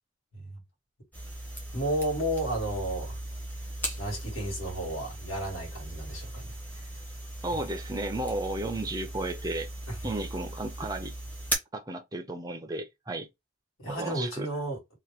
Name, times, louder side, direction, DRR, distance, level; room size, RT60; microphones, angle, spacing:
sound 1, 1.1-11.6, equal, 10° left, 0.7 m, -38 dB
voice 1, 1.7-3.2 4.0-6.9 9.9-10.0 13.8-14.8, right 1 dB, 70° left, 1.6 m, -32 dB
voice 2, 7.4-9.7 10.0-11.1 11.7-13.3 13.9-14.5, right 2 dB, 15° right, 0.4 m, -33 dB
2.8 x 2.2 x 3.2 m
head